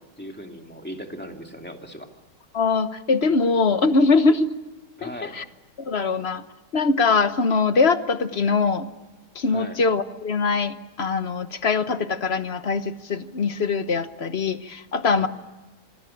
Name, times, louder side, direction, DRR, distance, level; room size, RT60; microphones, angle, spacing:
voice 1, 0.0-2.1 5.0-5.4 9.5-9.8 15.2-15.3, equal, 5° left, 3 dB, 2.5 m, -38 dB
voice 2, 2.5-4.5 5.0-5.4 5.8-6.4 6.7-8.9 9.3-15.3, left 4 dB, 40° left, 10 dB, 1.1 m, -22 dB
27.0 x 21.0 x 8.7 m, 1.2 s
omnidirectional pair, 2.0 m